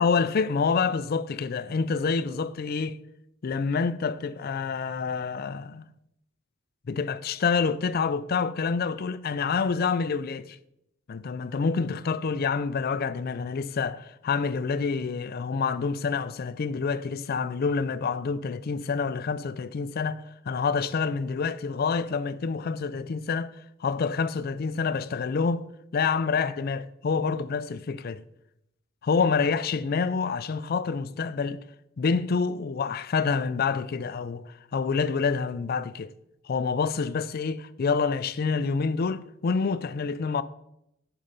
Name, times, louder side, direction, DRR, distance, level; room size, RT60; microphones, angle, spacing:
voice 1, 0.0-3.0 3.4-5.8 6.9-10.6 11.1-23.5 23.8-25.7 25.9-28.2 29.0-31.6 32.0-36.1 36.4-40.4, left 5 dB, 50° left, 0.4 m, -27 dB
7.1 x 5.5 x 5.1 m
head